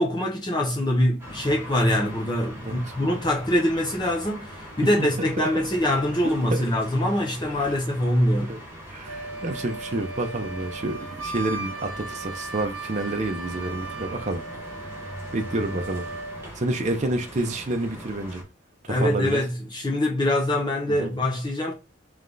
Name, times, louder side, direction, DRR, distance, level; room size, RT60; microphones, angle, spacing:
voice 1, 0.0-8.5 18.9-21.7, left 1 dB, 20° left, 0.8 m, -24 dB
sound 1, 1.2-18.4, equal, 10° right, 1.5 m, -42 dB
voice 2, 5.0-5.5 6.5-6.6 7.6-7.7 8.5-8.6 8.9-14.4 15.3-16.1 16.5-18.4 18.8-19.4 20.9-21.1, right 2 dB, 40° right, 0.6 m, -29 dB
Wind instrument woodwind instrument, 9.0-16.5, right 3 dB, 75° right, 0.8 m, -37 dB
3.4 x 3.3 x 3.9 m
head